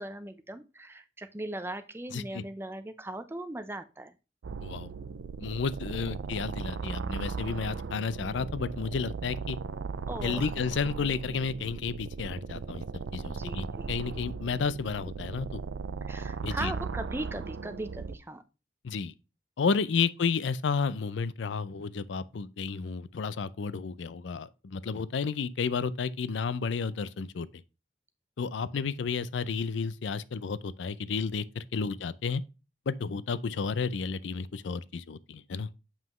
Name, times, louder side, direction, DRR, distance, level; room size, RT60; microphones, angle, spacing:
voice 1, 0.0-4.1 10.1-10.5 13.3-14.2 16.1-18.4 31.8-31.9, right 1 dB, 15° right, 0.6 m, -39 dB
voice 2, 2.1-2.4 4.6-4.9 5.4-9.6 10.2-12.8 13.1-15.6 16.4-16.7 18.8-19.1 19.6-27.5 28.4-32.4 32.9-35.7, left 5 dB, 85° left, 0.4 m, -32 dB
sound 1, 4.4-18.2, right 5 dB, 90° right, 0.4 m, -37 dB
7.3 x 5.7 x 3.1 m
head